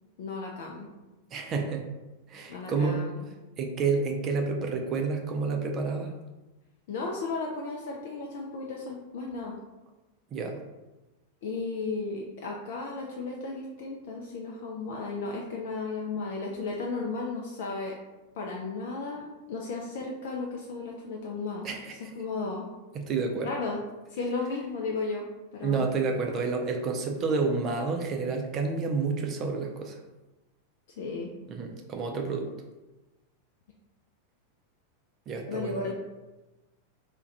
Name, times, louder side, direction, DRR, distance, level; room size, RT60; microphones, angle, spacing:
voice 1, 0.2-0.9 2.5-3.3 6.9-9.6 11.4-17.9 18.4-22.7 23.4-23.8 24.1-25.3 25.5-25.9 31.0-31.3 35.5-35.9, left 3 dB, 55° left, -1 dB, 0.3 m, -34 dB
voice 2, 1.3-1.9 2.3-3.0 3.6-6.1 10.3-10.6 21.6-22.1 22.9-23.5 25.6-30.0 31.5-32.5 35.3-35.9, right 4 dB, 30° right, 3 dB, 0.4 m, -29 dB
2.3 x 2.2 x 3.8 m, 1.1 s
figure-of-eight pair, 90°, 0 cm